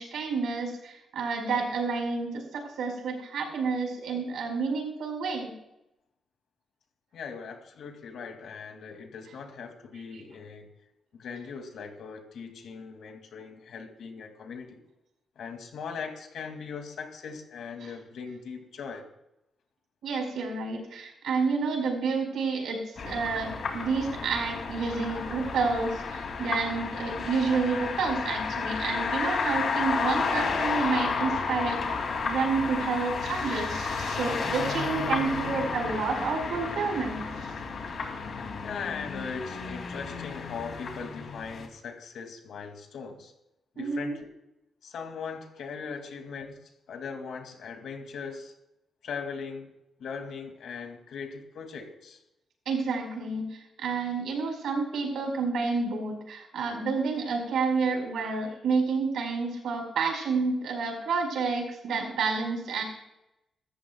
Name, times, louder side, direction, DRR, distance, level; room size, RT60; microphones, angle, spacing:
voice 1, 0.0-5.5 20.0-31.9 32.2-37.3 43.7-44.1 52.6-62.8, right 4 dB, 85° right, 3 dB, 5.0 m, -29 dB
voice 2, 7.1-10.7 11.1-14.8 15.4-19.1 38.6-43.3 43.7-44.3 44.8-46.6 46.9-48.5 49.0-49.7 50.0-52.2, left 5 dB, 75° left, 4 dB, 2.5 m, -39 dB
sound 1, 23.0-41.7, left 5 dB, 60° left, 2.8 m, -32 dB
25.0 x 13.5 x 2.4 m, 0.87 s
cardioid pair, 125°, 0 cm